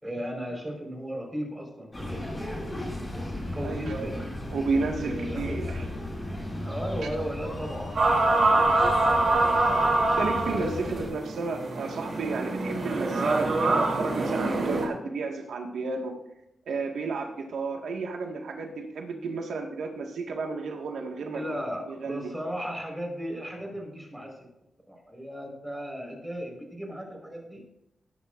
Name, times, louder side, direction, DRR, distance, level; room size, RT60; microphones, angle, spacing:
voice 1, 0.0-2.5 3.5-4.2 5.0-5.8 6.7-9.9 10.5-10.7 11.0-11.1 21.3-24.5 24.9-27.6, equal, 10° right, 0 dB, 4.7 m, -36 dB
sound 1, 1.9-11.1, left 1 dB, 20° left, 5.0 m, -35 dB
voice 2, 3.6-4.2 4.5-5.9 10.2-16.2 16.7-21.6 21.9-22.3, right 4 dB, 85° right, 2 dB, 1.8 m, -32 dB
sound 2, 8.0-14.9, right 2 dB, 55° right, 3.2 m, -24 dB
19.5 x 10.0 x 2.6 m, 0.83 s
cardioid pair, 75°, 0 cm